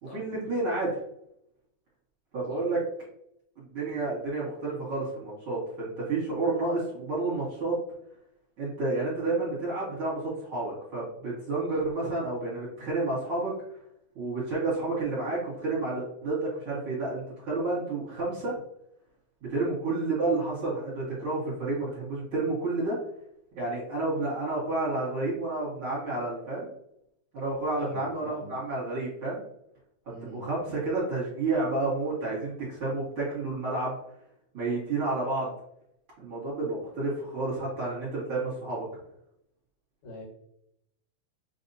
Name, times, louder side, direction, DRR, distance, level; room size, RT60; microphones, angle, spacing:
voice 1, 0.1-1.0 2.3-2.8 3.6-7.8 8.6-13.5 14.2-18.6 19.5-23.0 23.5-26.7 27.3-29.4 30.3-33.9 34.5-35.5 36.2-38.9, right 2 dB, 45° right, -7 dB, 2.2 m, -30 dB
voice 2, 27.8-28.6 30.1-30.5 40.0-40.2, left 2 dB, 65° left, -3 dB, 2.3 m, -44 dB
6.5 x 2.8 x 2.7 m, 0.76 s
omnidirectional pair, 3.8 m